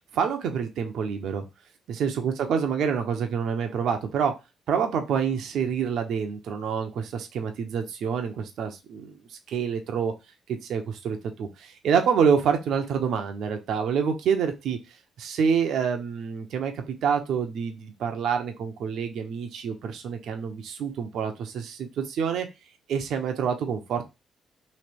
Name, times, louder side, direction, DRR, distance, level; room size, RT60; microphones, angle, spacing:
voice 1, 0.1-1.4 2.0-4.3 4.7-9.2 9.5-10.1 10.5-14.8 15.2-22.5 22.9-24.0, right 7 dB, 75° right, 5 dB, 0.8 m, -27 dB
3.3 x 2.9 x 4.4 m, 0.25 s
cardioid pair, 90°, 0 cm